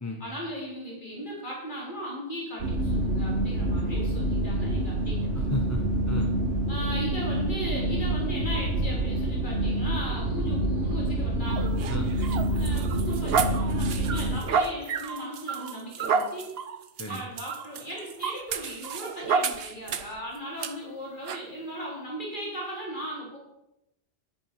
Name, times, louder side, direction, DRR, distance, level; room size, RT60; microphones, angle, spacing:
voice 1, 0.2-5.3 6.7-11.7 12.5-16.5 17.0-23.4, equal, 40° left, -3 dB, 4.1 m, -37 dB
sound 1, 2.6-14.4, right 1 dB, 75° right, 1.8 m, -27 dB
voice 2, 5.4-5.8 6.1-6.3 11.9-12.1 17.0-17.2, left 2 dB, 15° left, 2 dB, 1.1 m, -32 dB
sound 2, 11.5-20.2 20.6-20.7 21.3-21.5, right 5 dB, 60° right, 1.0 m, -30 dB
10.5 x 10.5 x 6.0 m, 0.89 s
omnidirectional pair, 1.2 m